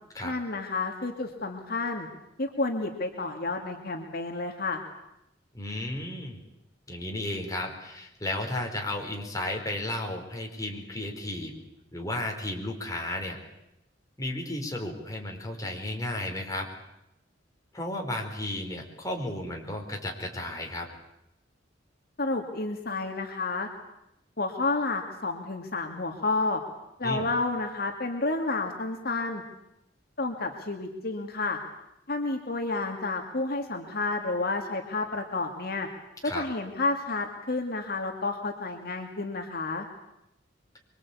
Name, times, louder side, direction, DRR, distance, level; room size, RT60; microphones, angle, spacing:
voice 1, 0.2-2.1 2.4-4.8 22.2-23.7 24.4-26.6 27.0-29.4 30.2-31.6 32.1-35.9 36.2-39.9, left 3 dB, 55° left, 3 dB, 2.4 m, -30 dB
voice 2, 5.5-6.4 6.9-11.5 11.9-13.4 14.2-16.7 17.7-20.9 27.0-27.3 36.2-36.4, left 1 dB, 20° left, 1 dB, 4.7 m, -33 dB
25.0 x 24.0 x 8.6 m, 0.86 s
head